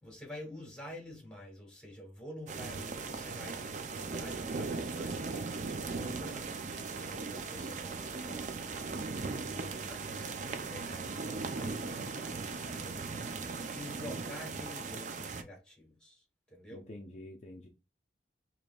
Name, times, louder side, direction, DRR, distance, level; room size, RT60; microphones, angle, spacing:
voice 1, 0.0-16.9, left 1 dB, 5° left, 1.4 m, -49 dB
sound 1, 2.5-15.4, right 4 dB, 40° right, 0.4 m, -38 dB
voice 2, 16.7-17.7, left 1 dB, 35° left, 0.4 m, -47 dB
5.0 x 2.9 x 2.3 m
head